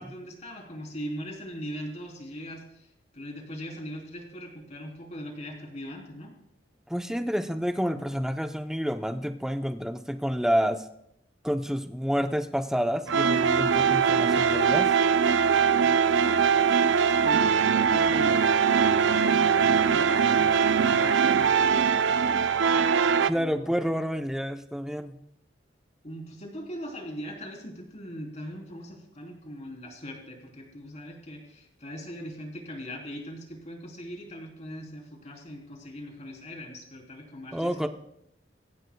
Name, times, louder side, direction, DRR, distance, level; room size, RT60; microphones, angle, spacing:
voice 1, 0.0-6.3 17.2-22.4 23.3-23.9 26.0-37.9, equal, 40° left, 1 dB, 3.6 m, -40 dB
voice 2, 6.9-10.9 11.4-14.9 23.2-25.2 37.5-37.9, equal, 5° right, 7 dB, 0.7 m, -29 dB
sound 1, 13.1-23.3, right 6 dB, 80° right, 0.5 m, -22 dB
23.5 x 16.0 x 2.3 m, 0.78 s
head